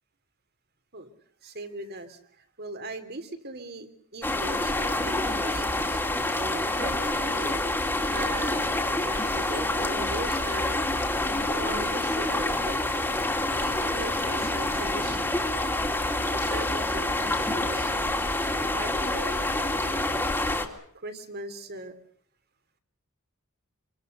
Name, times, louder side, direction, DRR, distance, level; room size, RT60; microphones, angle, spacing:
voice 1, 1.4-6.0 6.4-7.6 8.1-8.7 9.0-10.8 11.4-12.8 13.5-15.4 16.3-18.2 18.7-19.5 20.9-21.9, right 2 dB, 45° right, 9 dB, 3.2 m, -39 dB
sound 1, 4.2-20.7, left 2 dB, 10° left, 2.8 m, -27 dB
26.5 x 24.5 x 6.6 m, 0.64 s
head